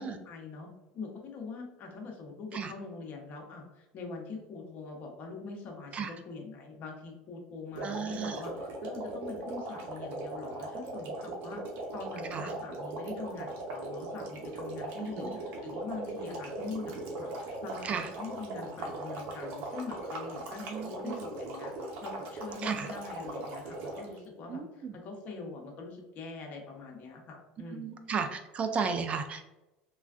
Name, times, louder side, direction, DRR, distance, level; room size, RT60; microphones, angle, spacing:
voice 1, 0.0-11.6 11.9-21.7 22.0-27.9, left 4 dB, 50° left, 1 dB, 0.8 m, -43 dB
sound 1, 7.7-24.2, right 2 dB, 60° right, 0.8 m, -39 dB
voice 2, 7.8-8.4 12.3-12.5 15.0-15.4 17.8-18.1 20.7-21.3 22.6-22.9 24.5-24.9 27.7-29.4, right 6 dB, 35° right, 8 dB, 0.3 m, -34 dB
3.2 x 2.4 x 2.4 m, 0.99 s
supercardioid pair, 105°, 4 cm